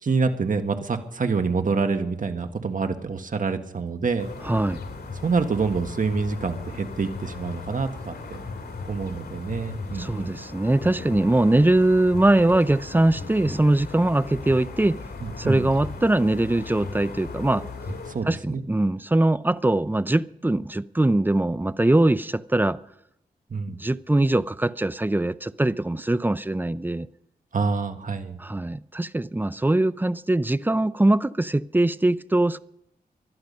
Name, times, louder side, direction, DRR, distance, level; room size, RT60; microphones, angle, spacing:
voice 1, 0.0-4.3 5.2-8.4 8.9-10.3 15.2-15.7 18.1-18.6 23.5-23.8 27.5-28.4, right 4 dB, 55° right, 1.6 m, -27 dB
sound 1, 4.2-18.1, left 4 dB, 80° left, 2.7 m, -37 dB
voice 2, 4.4-4.8 9.9-15.0 15.4-17.7 18.2-22.8 23.8-27.1 28.4-32.6, right 1 dB, 10° right, 0.5 m, -22 dB
20.5 x 12.0 x 5.5 m
wide cardioid pair, 85°, 16 cm